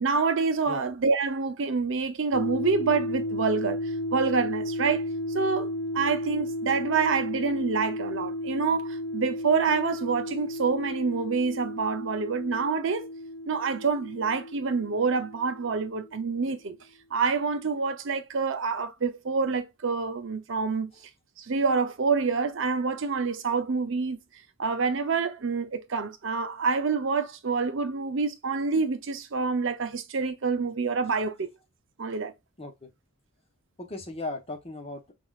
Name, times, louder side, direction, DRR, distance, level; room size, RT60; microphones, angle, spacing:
voice 1, 0.0-13.1 13.5-16.8 17.1-20.9 21.4-24.2 24.6-31.5 32.0-32.3, right 5 dB, 60° right, 0.6 m, -27 dB
sound 1, 2.3-16.3, left 1 dB, 85° left, 0.9 m, -34 dB
voice 2, 32.6-32.9 33.8-35.1, left 2 dB, 25° left, 1.0 m, -37 dB
6.0 x 2.5 x 2.4 m
head